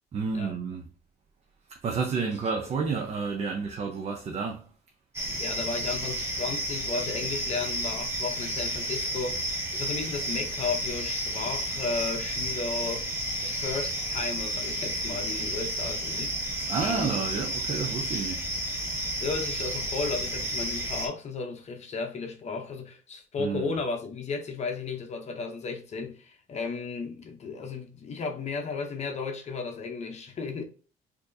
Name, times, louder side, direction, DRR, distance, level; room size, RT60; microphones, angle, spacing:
voice 1, 0.1-0.9 1.7-4.7 16.7-18.5 23.4-23.7, right 5 dB, 40° right, 0.6 m, -30 dB
sound 1, 5.1-21.1, right 1 dB, 15° right, 1.2 m, -32 dB
voice 2, 5.3-16.4 16.8-17.2 19.2-30.6, left 4 dB, 40° left, 0.7 m, -34 dB
4.3 x 2.7 x 2.7 m
cardioid pair, 110°, 17 cm